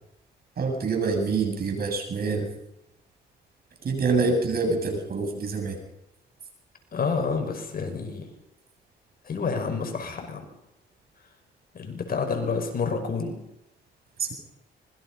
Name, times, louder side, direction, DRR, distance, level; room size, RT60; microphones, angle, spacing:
voice 1, 0.6-2.5 3.8-5.8, right 4 dB, 50° right, 3 dB, 7.8 m, -26 dB
voice 2, 6.9-8.3 9.3-10.4 11.7-13.4, left 5 dB, 50° left, 5 dB, 5.9 m, -29 dB
25.5 x 22.0 x 5.6 m, 0.85 s
cardioid pair, 90°, 20 cm